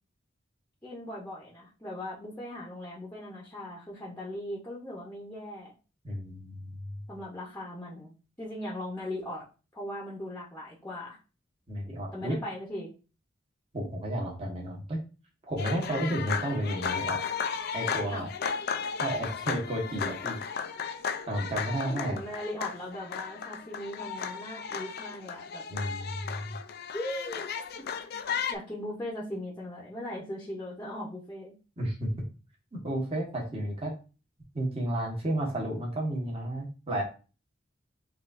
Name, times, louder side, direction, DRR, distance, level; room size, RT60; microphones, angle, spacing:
voice 1, 0.8-5.7 7.1-9.4 9.7-11.2 12.1-12.9 18.1-18.3 21.8-25.6 26.9-27.5 27.8-27.9 28.5-31.5, left 1 dB, 10° left, -4 dB, 0.8 m, -39 dB
voice 2, 6.0-6.9 11.7-12.4 13.7-15.0 15.5-17.2 17.7-18.3 19.0-20.4 21.3-22.2 25.7-26.6 31.8-32.1 32.7-33.9 34.5-37.0, right 1 dB, 30° right, -2 dB, 1.2 m, -32 dB
sound 1, 15.6-28.6, left 6 dB, 50° left, 0.4 m, -35 dB
6.2 x 2.5 x 2.5 m, 0.33 s
head